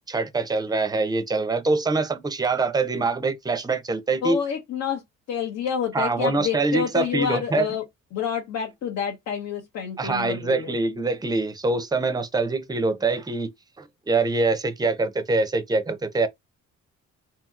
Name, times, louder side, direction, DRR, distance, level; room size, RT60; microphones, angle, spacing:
voice 1, 0.1-4.4 5.9-7.7 10.0-13.5 13.8-16.3, right 3 dB, 15° right, 0.5 m, -24 dB
voice 2, 4.2-5.0 5.3-7.8 8.1-10.7, left 7 dB, 70° left, 0.9 m, -28 dB
2.8 x 2.8 x 2.3 m
cardioid pair, 90°, 30 cm